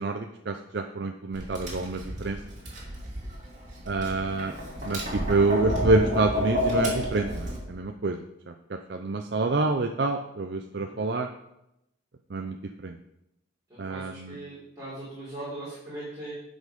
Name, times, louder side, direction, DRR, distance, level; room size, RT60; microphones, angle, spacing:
voice 1, 0.0-2.4 3.9-4.5 4.8-8.2 8.5-11.3 12.3-12.6 12.8-13.0 13.8-14.4, right 3 dB, 55° right, 5 dB, 0.5 m, -27 dB
Tap, 1.3-7.6, equal, 40° right, 2.7 m, -31 dB
voice 2, 10.7-11.1 13.8-16.3, right 1 dB, 20° right, -12 dB, 4.2 m, -40 dB
11.5 x 5.2 x 5.3 m, 0.85 s
head